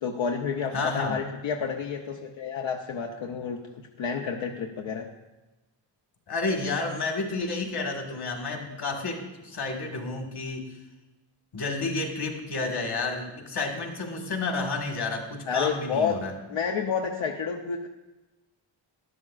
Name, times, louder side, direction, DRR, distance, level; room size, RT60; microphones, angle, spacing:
voice 1, 0.0-5.1 15.5-16.2 16.5-17.9, left 6 dB, 85° left, 2 dB, 0.8 m, -30 dB
voice 2, 0.7-1.2 6.3-10.6 11.5-16.4, left 3 dB, 55° left, 2 dB, 1.7 m, -30 dB
12.5 x 11.0 x 2.4 m, 1.1 s
wide cardioid pair, 125°, 46 cm